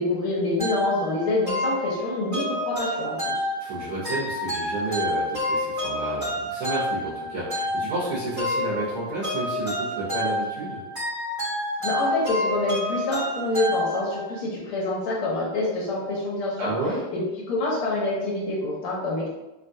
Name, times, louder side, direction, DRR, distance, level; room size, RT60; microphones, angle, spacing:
voice 1, 0.0-3.3 11.8-16.6 17.1-17.2 17.5-19.3, left 2 dB, 85° left, -4 dB, 1.5 m, -26 dB
sound 1, 0.6-14.4, left 1 dB, 15° right, 0.8 m, -29 dB
voice 2, 3.6-10.8 16.6-17.0, right 2 dB, 60° right, -9 dB, 1.0 m, -31 dB
3.4 x 2.2 x 2.6 m, 1.0 s
omnidirectional pair, 2.3 m